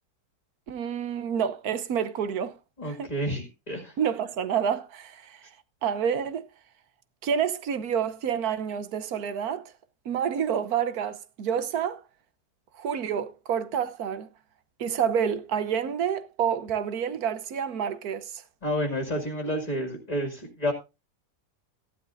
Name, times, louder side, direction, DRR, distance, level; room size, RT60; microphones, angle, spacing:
voice 1, 0.7-2.6 2.8-3.1 4.0-5.5 5.8-6.5 7.2-9.7 10.0-12.0 12.7-14.3 14.8-18.4, right 8 dB, 65° right, 1.3 m, -28 dB
voice 2, 2.8-4.0 18.6-20.7, equal, 20° left, 2.2 m, -30 dB
15.0 x 11.5 x 2.6 m
omnidirectional pair, 1.9 m